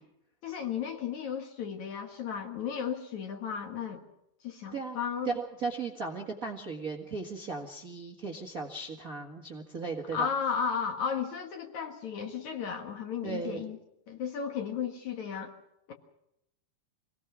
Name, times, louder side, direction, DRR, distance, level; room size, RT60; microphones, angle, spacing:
voice 1, 0.4-4.0 4.4-5.3 10.1-13.8 14.1-15.5 15.9-16.0, left 7 dB, 55° left, 5 dB, 2.5 m, -34 dB
voice 2, 5.2-10.3 13.2-13.7, right 4 dB, 85° right, 1 dB, 0.7 m, -36 dB
25.5 x 19.0 x 6.1 m, 0.82 s
omnidirectional pair, 4.8 m